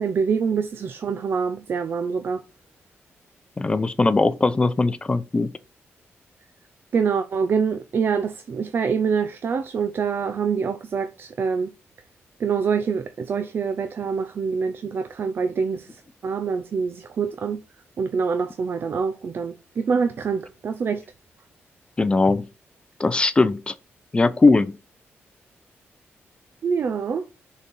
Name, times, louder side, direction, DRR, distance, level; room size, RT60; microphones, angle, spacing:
voice 1, 0.0-2.4 6.9-11.7 12.4-17.6 18.0-21.0 26.6-27.3, right 6 dB, 55° right, 0.6 m, -25 dB
voice 2, 3.6-5.5 22.0-22.5 23.0-23.7 24.1-24.8, left 3 dB, 20° left, 0.5 m, -20 dB
6.2 x 4.1 x 5.3 m
wide cardioid pair, 135°, 5 cm